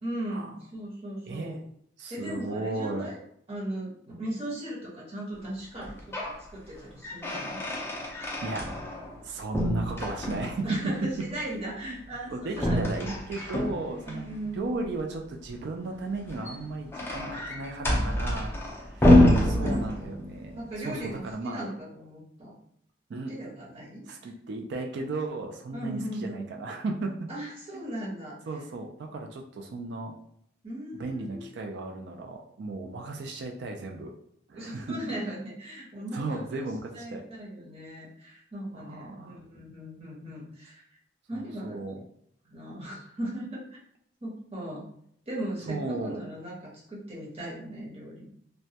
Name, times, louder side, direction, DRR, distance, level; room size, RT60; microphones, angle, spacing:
voice 1, 0.0-1.6 2.1-3.2 3.5-6.1 6.5-7.6 10.6-12.9 14.0-14.6 19.4-20.2 20.5-22.6 23.3-24.0 25.7-26.4 27.3-28.4 30.6-31.5 34.5-36.7 36.9-40.8 41.3-42.0 42.4-43.6 44.2-44.8 45.3-48.3, right 1 dB, 35° right, -5 dB, 0.8 m, -38 dB
voice 2, 1.3-1.6 2.0-3.1 8.4-8.7 9.2-10.7 11.5-12.0 12.3-18.6 18.9-21.6 23.1-23.3 24.0-27.1 27.7-27.8 28.5-30.1 30.9-34.1 34.5-35.0 36.1-37.2 38.7-39.4 41.3-42.0 45.7-46.2, right 2 dB, 60° right, 2 dB, 0.3 m, -35 dB
sound 1, 5.8-6.4 6.8-9.2 9.5-10.7 12.5-14.2 16.2-20.3, left 1 dB, 10° left, 0.4 m, -26 dB
2.1 x 2.1 x 2.7 m, 0.68 s
head